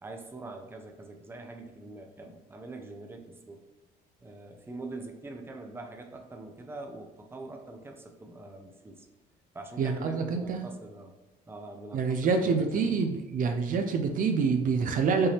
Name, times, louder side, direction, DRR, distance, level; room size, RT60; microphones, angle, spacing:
voice 1, 0.0-3.6 4.2-9.1 9.5-11.1 11.5-13.2, right 2 dB, 15° right, 3 dB, 0.6 m, -44 dB
voice 2, 9.8-10.7 11.9-15.3, right 5 dB, 55° right, 5 dB, 0.6 m, -27 dB
5.4 x 2.8 x 3.3 m, 1.1 s
cardioid pair, 110°, 17 cm